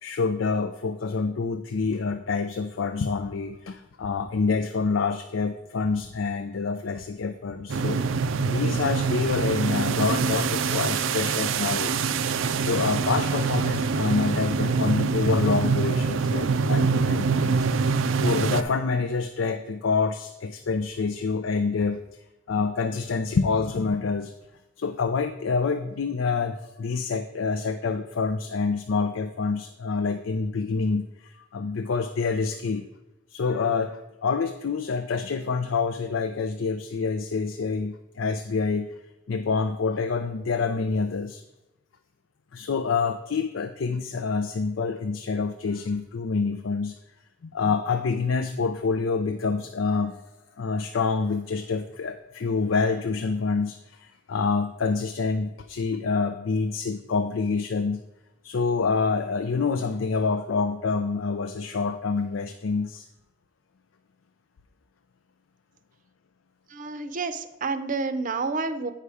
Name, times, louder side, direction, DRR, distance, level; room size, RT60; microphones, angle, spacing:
voice 1, 0.0-8.0 8.4-12.1 12.6-17.7 18.2-22.0 22.5-24.3 24.8-32.8 33.3-38.9 39.3-41.4 42.5-47.0 47.5-50.2 50.6-58.0 58.4-63.1, left 4 dB, 90° left, 8 dB, 0.5 m, -27 dB
sound 1, 7.7-18.6, right 5 dB, 90° right, 0.4 m, -25 dB
voice 2, 66.7-68.9, right 4 dB, 45° right, 11 dB, 0.6 m, -29 dB
8.3 x 5.6 x 4.8 m, 0.95 s
head